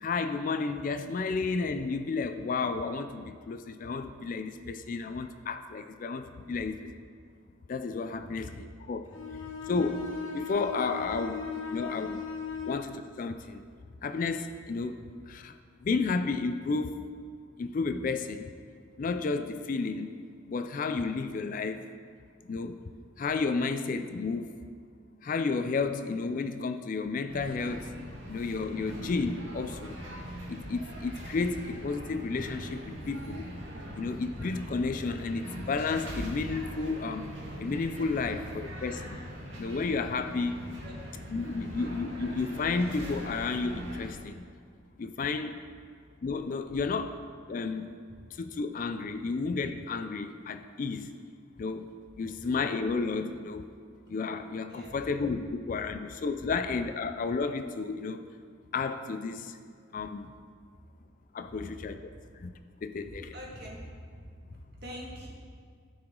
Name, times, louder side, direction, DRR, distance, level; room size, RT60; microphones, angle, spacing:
voice 1, 0.0-6.9 7.7-9.0 9.7-10.1 10.3-12.2 12.6-13.6 14.0-15.0 15.3-15.5 15.8-17.0 17.6-18.5 19.0-20.2 20.5-21.8 22.4-22.8 23.2-24.6 25.2-27.9 28.3-30.0 30.5-33.5 34.0-39.2 39.6-40.7 41.3-44.4 45.0-45.6 46.2-47.2 47.5-47.9 48.4-51.1 51.6-51.9 52.2-53.7 54.1-58.2 58.7-59.6 59.9-60.3 61.3-62.0 62.4-62.5 62.8-63.3, left 4 dB, 45° left, 9 dB, 0.3 m, -32 dB
voice 2, 8.2-8.5 9.6-9.7 12.5-12.6 38.2-38.3 40.8-41.0 41.5-41.6 52.2-52.3 54.7-55.0 56.4-56.5 61.5-61.6 62.1-62.2 63.0-63.9 64.4-65.3, equal, 55° right, -3 dB, 1.8 m, -45 dB
Bowed string instrument, 9.1-12.9, left 6 dB, 90° left, 0.9 m, -38 dB
sound 1, 27.3-44.1, equal, 75° right, 1.7 m, -41 dB
14.0 x 4.8 x 3.7 m, 2.1 s
head